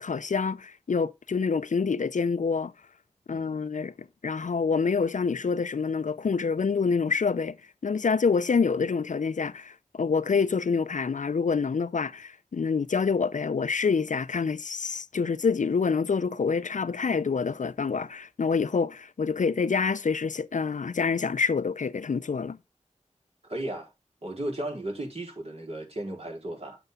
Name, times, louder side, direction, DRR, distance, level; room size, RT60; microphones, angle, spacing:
voice 1, 0.0-2.7 3.3-7.6 7.8-22.6, left 5 dB, 75° left, 0.6 m, -27 dB
voice 2, 3.3-3.7 23.5-23.9 24.2-26.8, right 1 dB, 55° right, 4.3 m, -35 dB
9.2 x 7.1 x 3.7 m
wide cardioid pair, 55°, 13 cm